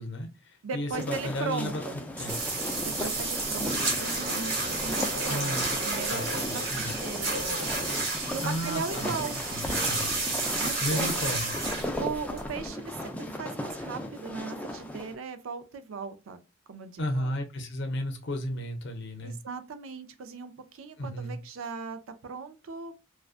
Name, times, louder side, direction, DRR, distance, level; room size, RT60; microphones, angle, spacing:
voice 1, 0.0-1.8 2.2-2.4 5.3-5.8 6.1-6.4 6.7-6.9 8.4-9.2 9.5-10.2 10.8-11.6 17.0-19.4 21.0-21.4, left 1 dB, 60° left, 0.6 m, -33 dB
voice 2, 0.6-2.0 2.8-7.8 8.2-9.4 10.6-11.1 12.0-16.4 16.7-17.3 19.2-22.9, right 5 dB, 85° right, 0.4 m, -38 dB
sound 1, 0.9-15.1, left 1 dB, 10° left, 0.3 m, -37 dB
sound 2, 2.2-3.7, equal, 15° right, 0.9 m, -48 dB
sound 3, 2.3-12.7, right 3 dB, 60° right, 1.0 m, -31 dB
2.4 x 2.2 x 2.4 m
head